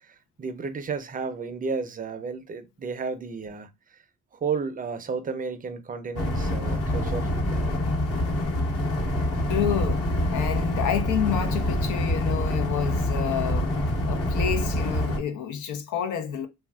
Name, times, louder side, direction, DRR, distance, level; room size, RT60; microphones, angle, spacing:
voice 1, 0.4-3.7 4.4-7.7, right 5 dB, 30° right, 0.5 m, -32 dB
sound 1, 6.2-15.2, left 1 dB, 50° left, 1.1 m, -26 dB
voice 2, 9.5-13.7 14.1-16.5, left 9 dB, 80° left, 0.6 m, -29 dB
3.2 x 2.4 x 2.2 m
cardioid pair, 90°, 30 cm